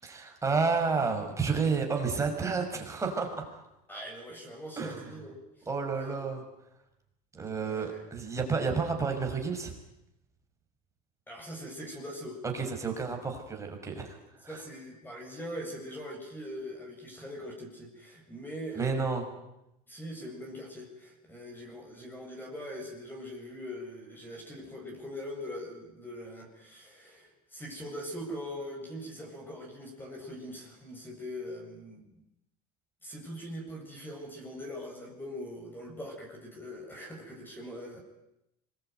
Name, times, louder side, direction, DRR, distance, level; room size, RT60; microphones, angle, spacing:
voice 1, 0.0-3.6 4.8-5.0 5.7-6.4 7.3-9.7 12.4-14.2 14.4-14.6 18.7-19.2, right 4 dB, 15° right, 3 dB, 6.1 m, -30 dB
voice 2, 3.9-6.3 7.6-8.0 11.3-12.4 13.0-13.1 14.0-14.1 14.5-19.2 19.9-32.2 33.0-38.0, equal, 10° left, 1 dB, 7.6 m, -42 dB
25.0 x 21.5 x 9.4 m, 0.86 s
supercardioid pair, 120°, 19 cm